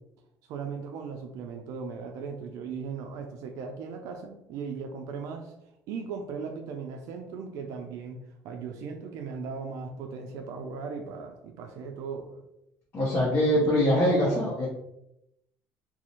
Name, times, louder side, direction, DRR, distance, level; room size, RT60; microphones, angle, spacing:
voice 1, 0.5-5.5 5.9-8.2 8.4-12.3, right 5 dB, 65° right, 4 dB, 0.3 m, -37 dB
voice 2, 12.9-14.7, equal, 35° left, -7 dB, 0.7 m, -23 dB
2.5 x 2.0 x 2.8 m, 0.82 s
cardioid pair, 125°, 6 cm